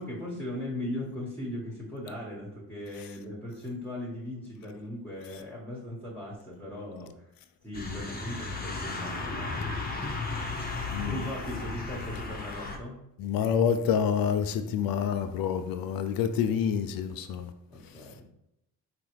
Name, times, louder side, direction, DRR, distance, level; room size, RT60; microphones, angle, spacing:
voice 1, 0.0-7.3 7.6-9.7 11.1-13.0 17.7-18.3, left 1 dB, 5° left, 1.3 m, -38 dB
sound 1, 7.7-12.8, left 3 dB, 25° left, 0.9 m, -35 dB
voice 2, 13.2-17.5, left 7 dB, 60° left, 0.5 m, -27 dB
3.9 x 2.9 x 3.2 m
supercardioid pair, 60°, 41 cm